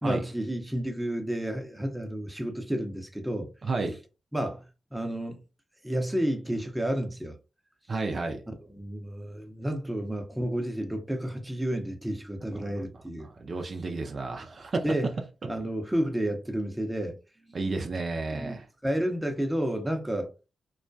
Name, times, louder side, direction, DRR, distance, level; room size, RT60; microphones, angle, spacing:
voice 1, 0.0-3.5 4.3-4.6 4.9-5.4 5.8-7.4 8.7-13.3 14.8-15.1 15.5-17.2 18.3-20.3, right 1 dB, 5° right, 0.7 m, -31 dB
voice 2, 3.6-4.0 7.9-8.4 12.5-12.9 13.3-14.9 17.5-18.7, right 3 dB, 55° right, 0.4 m, -32 dB
2.3 x 2.1 x 2.5 m
supercardioid pair, 55°, 0 cm